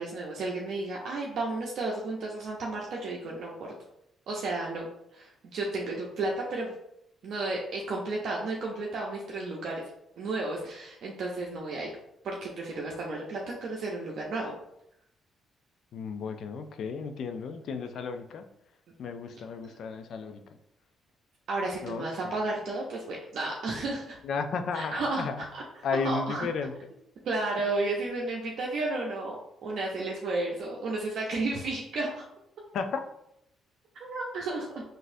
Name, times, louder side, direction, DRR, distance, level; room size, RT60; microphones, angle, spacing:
voice 1, 0.0-3.7 4.3-4.9 5.1-6.7 7.2-9.8 10.2-11.9 12.2-14.5 21.5-24.2 24.7-25.6 26.0-26.5 27.2-32.3 33.9-34.8, right 2 dB, 70° right, -2 dB, 0.5 m, -33 dB
voice 2, 15.9-18.4 19.0-20.4 21.8-22.3 24.2-25.5 25.8-26.7 32.7-33.0, left 5 dB, 70° left, 7 dB, 0.3 m, -33 dB
4.0 x 2.5 x 2.6 m, 0.79 s
cardioid pair, 90°, 0 cm